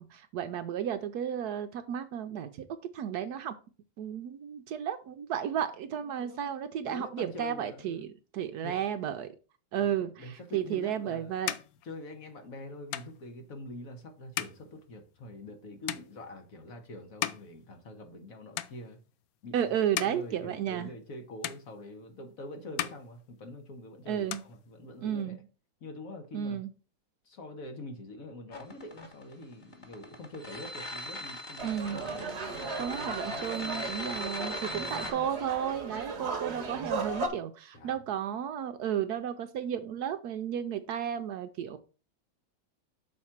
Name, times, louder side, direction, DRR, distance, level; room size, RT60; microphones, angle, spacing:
voice 1, 0.0-2.6 2.9-3.5 4.0-8.1 8.3-9.3 9.7-11.5 19.5-20.9 24.1-24.4 25.0-25.4 26.3-26.7 31.6-32.0 32.8-41.8, right 9 dB, 70° right, 1.0 m, -33 dB
voice 2, 5.9-6.5 6.9-8.1 8.6-8.8 9.8-11.4 11.8-19.0 19.4-25.4 25.8-26.6 27.2-33.5 34.6-35.1 37.7-38.0, left 1 dB, 55° left, 1.5 m, -45 dB
sound 1, 10.6-18.3 18.5-19.2 19.7-21.2 21.4-22.3 22.6-23.8 24.1-25.2, left 12 dB, 70° left, 0.9 m, -40 dB
sound 2, 28.5-35.1, left 1 dB, 25° left, 1.4 m, -40 dB
sound 3, 31.6-37.3, right 3 dB, 40° right, 1.3 m, -36 dB
6.4 x 4.3 x 5.7 m
omnidirectional pair, 1.9 m